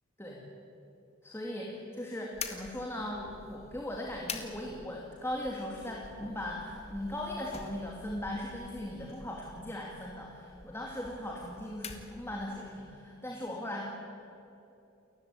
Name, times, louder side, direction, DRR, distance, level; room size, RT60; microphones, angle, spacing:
voice 1, 1.2-13.9, left 1 dB, 10° left, -2 dB, 2.6 m, -38 dB
sound 1, 2.3-12.7, left 5 dB, 30° left, 2.0 m, -47 dB
29.0 x 15.0 x 9.7 m, 2.8 s
head